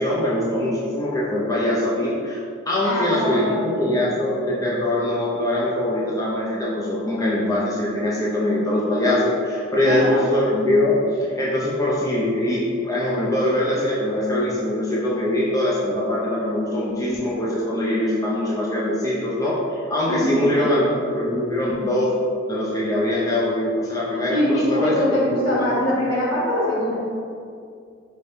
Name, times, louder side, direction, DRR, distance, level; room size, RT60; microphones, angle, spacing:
voice 1, 0.0-2.4 2.7-22.1 22.5-25.7, left 1 dB, 15° left, -6 dB, 0.6 m, -22 dB
voice 2, 2.8-4.0 9.8-10.2 20.1-20.7 24.3-26.9, equal, 75° left, -7 dB, 1.3 m, -23 dB
5.1 x 3.3 x 2.7 m, 2.3 s
head